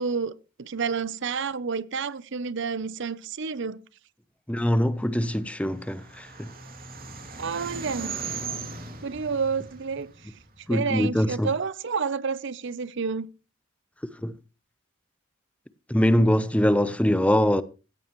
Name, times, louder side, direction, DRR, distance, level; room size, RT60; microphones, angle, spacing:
voice 1, 0.0-3.8 7.4-8.2 9.0-10.3 10.7-13.3, right 5 dB, 60° right, 0.7 m, -30 dB
voice 2, 4.5-6.5 10.7-11.5 14.2-14.3 15.9-17.6, equal, 5° left, 0.8 m, -23 dB
sound 1, 5.4-10.8, right 4 dB, 45° right, 2.8 m, -38 dB
17.0 x 14.5 x 3.1 m
head